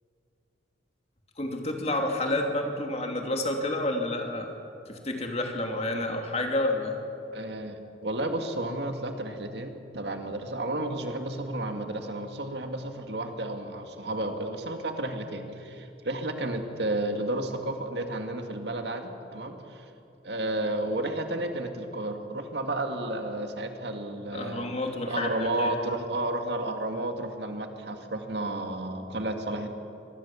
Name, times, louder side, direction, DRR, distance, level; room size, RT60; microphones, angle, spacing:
voice 1, 1.4-4.5 4.9-7.0 24.3-26.0, left 1 dB, 35° left, 3 dB, 2.7 m, -30 dB
voice 2, 7.3-19.8 20.2-24.7 25.1-29.7, right 1 dB, 70° right, 5 dB, 2.1 m, -32 dB
25.0 x 20.0 x 7.2 m, 2.7 s
head